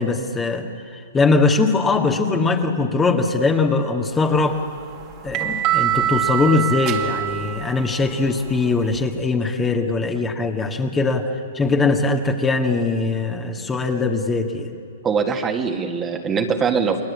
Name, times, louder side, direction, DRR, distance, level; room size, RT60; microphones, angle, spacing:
voice 1, 0.0-4.6 5.2-14.7, left 3 dB, 15° left, 3 dB, 1.9 m, -21 dB
sound 1, 4.2-9.1, right 11 dB, 35° right, 2.1 m, -25 dB
voice 2, 15.0-17.0, right 5 dB, 20° right, 4 dB, 2.0 m, -22 dB
30.0 x 21.5 x 8.6 m, 2.4 s
hypercardioid pair, 125°, 0 cm